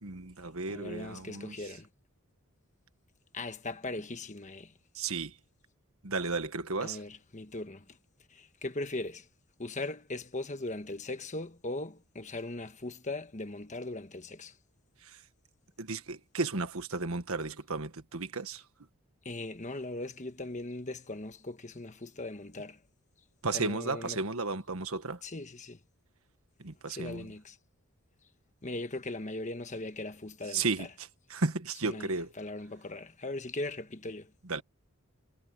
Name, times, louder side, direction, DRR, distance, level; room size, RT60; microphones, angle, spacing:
voice 1, 0.0-1.5 4.9-5.3 6.0-7.0 15.8-18.6 23.4-25.2 26.6-27.3 30.5-30.9 31.3-32.3 34.5-34.6, right 3 dB, 70° right, 1.5 m, -33 dB
voice 2, 0.7-1.9 3.3-4.7 6.8-8.0 8.3-9.3 9.6-14.6 19.2-22.8 23.5-24.2 25.2-25.8 26.9-27.6 28.6-30.9 31.8-34.3, left 2 dB, 35° left, 1.3 m, -39 dB
head